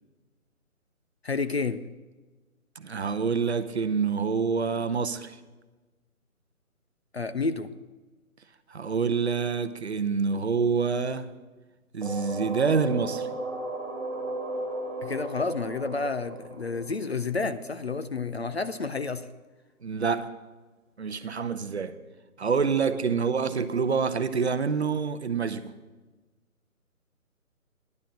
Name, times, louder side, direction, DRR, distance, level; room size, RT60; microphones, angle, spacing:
voice 1, 1.2-1.9 7.1-7.7 15.0-19.3, left 4 dB, 50° left, 0.5 m, -30 dB
voice 2, 2.8-5.4 8.7-11.3 11.9-13.3 19.8-20.3 21.0-22.0 22.4-25.7, right 5 dB, 50° right, 0.7 m, -27 dB
sound 1, 12.0-17.7, right 2 dB, ahead, 1.8 m, -35 dB
10.5 x 7.5 x 7.4 m
hypercardioid pair, 165°, 43 cm